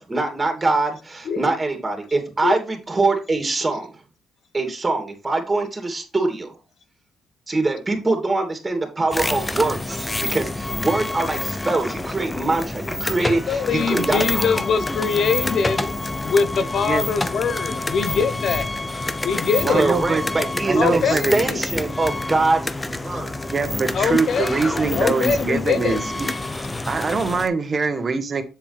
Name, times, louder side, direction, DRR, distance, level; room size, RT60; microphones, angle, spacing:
voice 1, 0.0-3.9 4.5-6.6 7.5-14.2 19.7-23.5, right 3 dB, 20° right, 4 dB, 2.8 m, -23 dB
sound 1, 9.1-27.5, left 2 dB, 15° left, 0.8 m, -27 dB
voice 2, 13.2-15.9 16.2-18.7 19.2-19.9 20.7-21.6 23.1-23.2 23.9-26.0, left 6 dB, 60° left, 12 dB, 1.0 m, -23 dB
voice 3, 19.6-20.2 20.7-21.3 23.5-26.3 26.9-28.4, right 4 dB, 35° right, 8 dB, 1.6 m, -23 dB
7.5 x 7.1 x 3.5 m, 0.30 s
cardioid pair, 90°, 0 cm